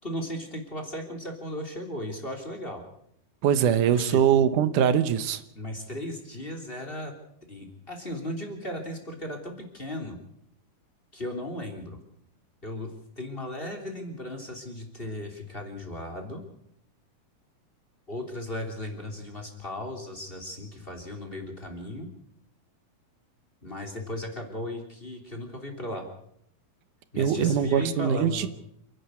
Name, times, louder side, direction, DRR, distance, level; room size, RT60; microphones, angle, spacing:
voice 1, 0.0-2.8 3.8-4.4 5.5-7.1 7.5-10.2 11.1-12.0 12.6-16.4 18.1-22.1 23.6-26.1 27.1-28.5, left 1 dB, 15° left, 4 dB, 3.2 m, -36 dB
voice 2, 3.4-5.4 27.2-28.5, right 8 dB, 80° right, 12 dB, 2.6 m, -22 dB
29.0 x 11.0 x 8.3 m, 0.73 s
omnidirectional pair, 3.5 m